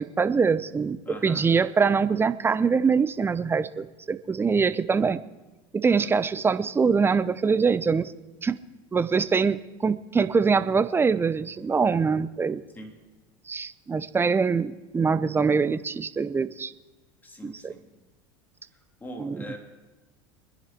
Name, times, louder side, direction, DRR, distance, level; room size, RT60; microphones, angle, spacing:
voice 1, 0.0-1.0 1.2-5.2 5.7-8.1 8.4-8.6 8.9-12.6 13.5-16.7 17.4-17.7 19.2-19.4, right 5 dB, 20° right, 14 dB, 0.7 m, -24 dB
voice 2, 1.0-1.4 5.8-6.2 12.7-12.9 17.2-17.8 18.7-19.6, left 1 dB, 15° left, 2 dB, 3.4 m, -42 dB
24.0 x 10.5 x 4.5 m, 1.2 s
hypercardioid pair, 85°, 12 cm